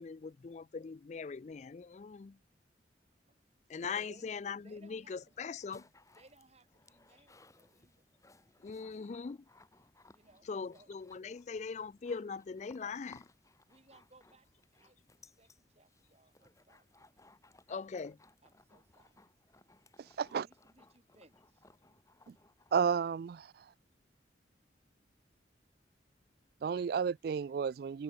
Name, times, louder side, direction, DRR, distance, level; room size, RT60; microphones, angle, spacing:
voice 1, 0.0-2.4 3.7-5.9 8.6-9.4 10.5-13.3 17.7-18.2, left 5 dB, 40° left, 0.4 m, -41 dB
voice 2, 3.2-3.6 3.9-4.3 4.6-5.6 6.1-8.0 10.1-10.9 13.7-15.1 15.4-17.1 18.4-19.2 20.4-21.6, right 2 dB, 35° right, 3.2 m, -64 dB
sound 1, 5.2-23.2, left 2 dB, 15° left, 3.5 m, -64 dB
voice 3, 20.0-20.5 22.7-23.7 26.6-28.0, right 6 dB, 55° right, 0.3 m, -32 dB
head